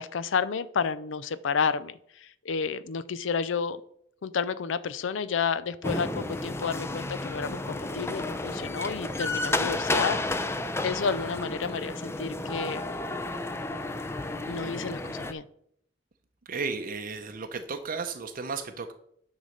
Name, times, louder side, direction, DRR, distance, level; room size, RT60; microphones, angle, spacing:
voice 1, 0.0-3.8 4.2-10.5 10.8-12.9 14.5-15.5, left 5 dB, 75° left, 16 dB, 0.5 m, -31 dB
sound 1, 5.8-15.3, left 2 dB, 15° left, 0.5 m, -32 dB
voice 2, 16.5-18.9, right 4 dB, 45° right, 7 dB, 0.6 m, -34 dB
9.6 x 4.0 x 6.4 m, 0.69 s
head